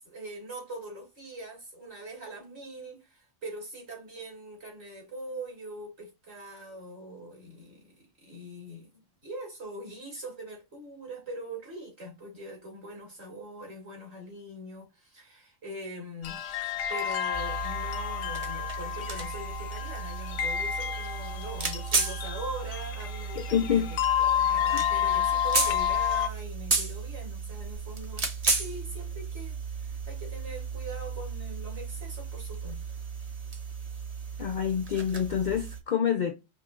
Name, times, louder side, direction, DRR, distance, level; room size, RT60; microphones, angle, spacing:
voice 1, 0.0-8.9 9.2-16.4 16.9-32.8, right 1 dB, 55° right, 2.6 m, -42 dB
sound 1, 16.2-26.3, left 9 dB, 70° left, 0.9 m, -30 dB
sound 2, 17.3-35.8, right 4 dB, 35° right, 0.8 m, -34 dB
voice 2, 23.4-23.9 24.7-24.8 34.4-36.3, left 8 dB, 85° left, 0.4 m, -27 dB
5.3 x 2.7 x 2.5 m
omnidirectional pair, 1.3 m